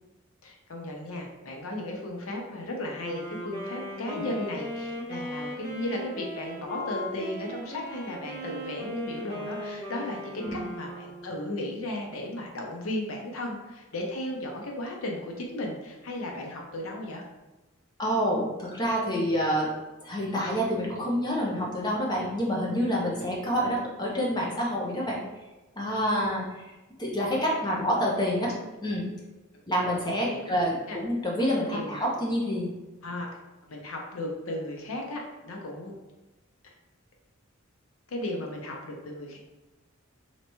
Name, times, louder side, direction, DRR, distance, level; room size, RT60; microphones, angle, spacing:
voice 1, 0.4-17.2 27.7-27.8 30.3-30.6 30.9-31.0 31.7-32.0 33.0-33.3 33.7-36.0 38.1-39.4, left 1 dB, 80° left, 1 dB, 0.7 m, -35 dB
Wind instrument woodwind instrument, 3.0-11.6, equal, 35° left, 1.3 m, -38 dB
voice 2, 18.0-19.7 20.0-25.2 25.8-26.7 27.0-28.5 28.8-29.1 29.7-32.7, equal, 20° left, -4 dB, 0.8 m, -27 dB
3.3 x 2.8 x 3.0 m, 1.1 s
head